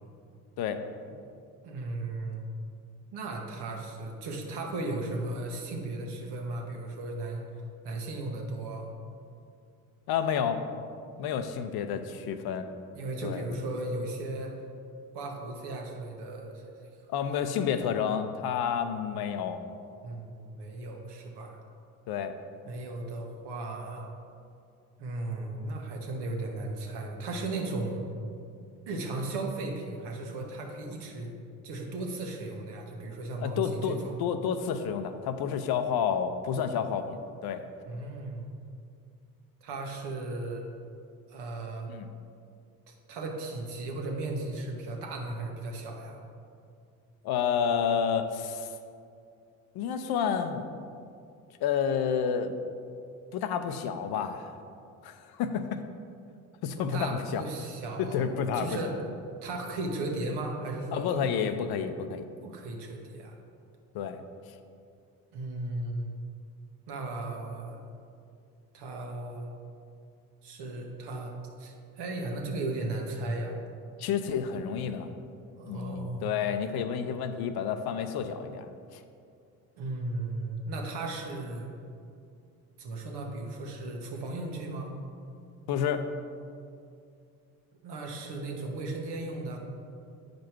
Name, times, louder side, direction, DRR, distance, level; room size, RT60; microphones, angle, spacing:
voice 1, 1.6-2.4 3.1-7.4 7.8-8.9 12.9-14.5 15.1-16.6 20.0-21.6 22.6-24.1 25.0-28.0 28.9-31.3 31.6-34.2 37.9-38.4 39.6-40.6 41.3-41.9 42.9-46.2 56.8-59.0 59.4-61.4 62.4-63.4 65.3-66.1 66.9-67.8 68.7-69.5 70.4-73.6 75.6-76.3 79.8-81.7 82.8-84.9 87.8-89.6, right 2 dB, 70° right, 1 dB, 1.4 m, -36 dB
voice 2, 10.1-10.6 11.2-12.7 13.2-13.5 17.1-19.6 22.1-22.4 33.4-37.6 41.9-42.1 47.2-48.7 49.7-50.7 51.6-52.5 53.3-54.5 55.0-55.8 56.6-57.4 58.0-58.9 60.9-62.3 63.9-64.2 74.0-75.1 75.7-78.7 78.9-79.0 85.7-86.0, left 7 dB, 60° left, 8 dB, 0.7 m, -30 dB
8.1 x 5.2 x 4.6 m, 2.4 s
hypercardioid pair, 65°, 42 cm